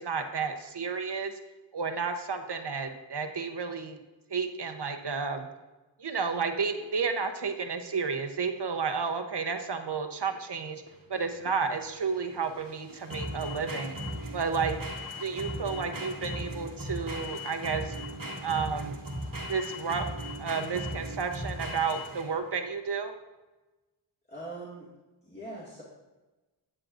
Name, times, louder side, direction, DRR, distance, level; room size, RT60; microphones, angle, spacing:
voice 1, 0.0-1.3 1.7-4.0 4.3-5.5 6.0-10.8 11.1-14.0 14.3-14.8 15.2-17.9 18.4-19.0 19.5-20.1 20.4-23.1, right 5 dB, 60° right, 5 dB, 0.9 m, -31 dB
sound 1, 10.9-22.5, equal, 45° right, 1.3 m, -37 dB
voice 2, 24.3-24.9 25.2-25.8, right 2 dB, 20° left, -7 dB, 2.1 m, -41 dB
13.0 x 8.8 x 2.6 m, 1.1 s
wide cardioid pair, 75°, 45 cm